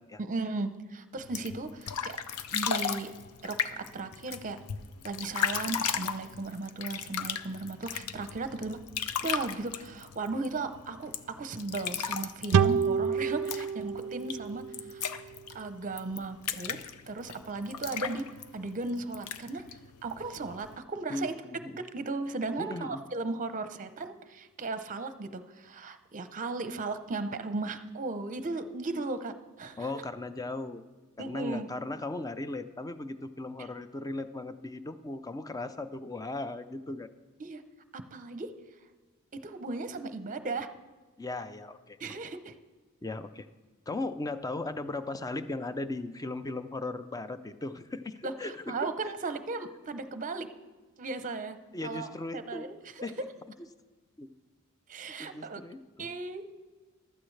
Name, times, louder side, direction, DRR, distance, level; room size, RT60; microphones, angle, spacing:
voice 1, 0.2-2.2 2.5-3.1 3.4-4.6 5.0-8.8 9.2-15.1 15.5-16.8 17.1-18.2 18.5-19.7 20.0-21.3 21.8-29.9 31.2-31.7 37.4-37.6 37.9-38.5 39.4-40.7 42.0-42.5 48.2-50.5 51.0-51.6 51.8-52.1 52.3-53.1 54.9-55.6 56.0-56.4, right 3 dB, 35° right, 10 dB, 0.7 m, -36 dB
sound 1, 1.2-20.8, left 7 dB, 85° left, 0.6 m, -37 dB
sound 2, 12.5-15.9, right 7 dB, 85° right, 0.4 m, -29 dB
voice 2, 21.1-21.8 22.6-23.0 29.8-30.8 31.2-37.1 41.2-42.0 43.0-43.5 43.9-49.1 51.7-52.7 53.0-53.2 54.2-54.3 55.2-56.2, left 2 dB, 15° left, 11 dB, 0.5 m, -37 dB
15.0 x 12.0 x 3.3 m, 1.3 s
head